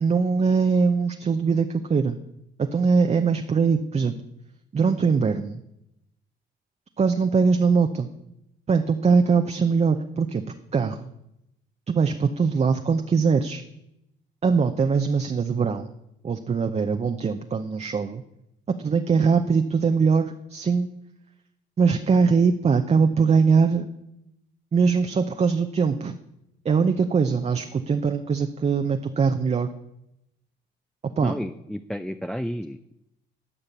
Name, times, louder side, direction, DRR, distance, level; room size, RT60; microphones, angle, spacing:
voice 1, 0.0-2.2 2.6-4.1 4.7-5.6 7.0-8.1 8.7-10.4 10.7-11.1 11.9-13.6 14.4-15.9 16.2-18.2 18.8-20.9 21.8-23.9 24.7-26.1 26.6-29.7 31.2-31.3, right 5 dB, 35° right, 7 dB, 0.7 m, -22 dB
voice 2, 31.2-32.9, equal, 5° left, 9 dB, 0.4 m, -31 dB
12.0 x 5.7 x 8.3 m, 0.84 s
cardioid pair, 90°, 20 cm